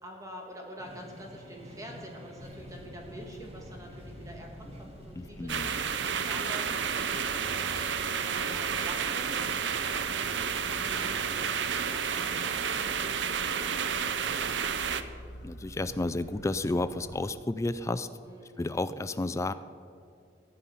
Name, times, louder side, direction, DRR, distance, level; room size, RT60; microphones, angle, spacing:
voice 1, 0.0-9.4 9.8-12.8 18.2-18.6, equal, 20° right, 0 dB, 1.7 m, -46 dB
sound 1, 0.8-12.6, equal, 35° right, 1.6 m, -51 dB
sound 2, 2.4-17.3, equal, 75° left, 2.3 m, -49 dB
voice 2, 5.2-5.8 15.4-18.1 18.6-19.5, left 2 dB, 15° left, 13 dB, 0.3 m, -31 dB
sound 3, 5.5-15.0, right 6 dB, 75° right, 0.7 m, -31 dB
16.0 x 5.5 x 9.8 m, 2.3 s
head